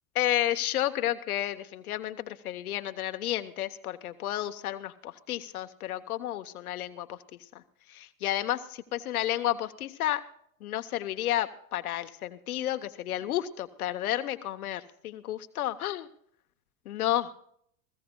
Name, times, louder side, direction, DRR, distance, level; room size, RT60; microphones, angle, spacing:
voice 1, 0.1-7.2 7.9-10.2 10.6-16.1 16.9-17.3, left 13 dB, 85° left, 9 dB, 0.9 m, -31 dB
21.0 x 15.5 x 2.2 m, 0.66 s
hypercardioid pair, 100°, 43 cm